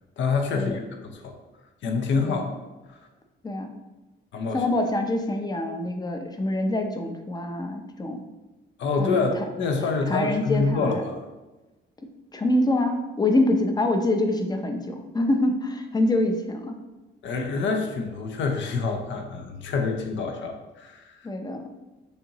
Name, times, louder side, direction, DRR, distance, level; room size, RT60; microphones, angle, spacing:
voice 1, 0.2-1.4 1.8-2.5 2.9-3.0 4.3-4.7 8.8-9.3 9.6-11.2 17.2-21.3, left 4 dB, 70° left, 4 dB, 0.8 m, -27 dB
voice 2, 4.5-8.2 9.0-9.3 10.1-11.0 12.3-16.8 21.2-21.6, left 1 dB, 20° left, 5 dB, 0.6 m, -25 dB
6.6 x 2.8 x 2.9 m, 1.1 s
cardioid pair, 90°, 20 cm